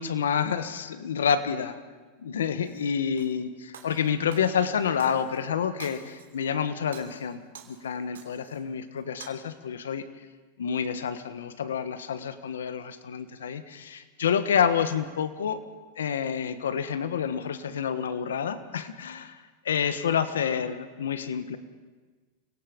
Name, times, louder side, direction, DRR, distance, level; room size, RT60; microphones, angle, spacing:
voice 1, 0.0-1.7 2.2-7.4 7.7-10.0 10.6-15.6 16.0-19.4 19.6-21.6, left 7 dB, 90° left, 11 dB, 1.4 m, -28 dB
Shatter, 2.6-3.3 3.7-5.4 5.8-6.5 6.8-8.6 9.0-9.3, right 8 dB, 90° right, 3.1 m, -48 dB
29.0 x 18.0 x 5.3 m, 1.3 s
hypercardioid pair, 115°, 0 cm